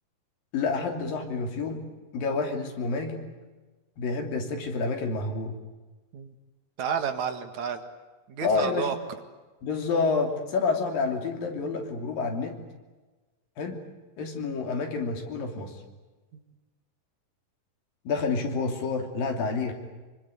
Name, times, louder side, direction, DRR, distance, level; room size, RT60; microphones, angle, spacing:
voice 1, 0.5-3.3 4.0-5.6 8.4-8.9 9.6-12.6 13.6-13.9 14.2-15.7 18.1-19.7, left 4 dB, 90° left, 4 dB, 4.8 m, -29 dB
voice 2, 6.8-7.9 8.3-9.0, right 7 dB, 60° right, 7 dB, 2.9 m, -30 dB
25.5 x 24.5 x 8.2 m, 1.2 s
omnidirectional pair, 3.9 m